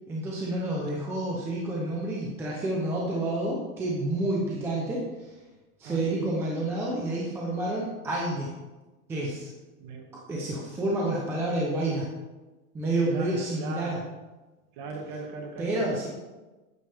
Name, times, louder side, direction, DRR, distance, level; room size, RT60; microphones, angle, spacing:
voice 1, 0.1-5.3 5.8-8.5 9.1-9.5 10.3-12.1 12.7-14.0 15.6-16.1, right 1 dB, 5° right, -4 dB, 0.6 m, -29 dB
voice 2, 5.8-6.4 9.8-10.1 13.1-14.1 14.7-16.1, right 4 dB, 35° right, 4 dB, 1.4 m, -39 dB
12.0 x 9.1 x 3.5 m, 1.2 s
supercardioid pair, 175°, 43 cm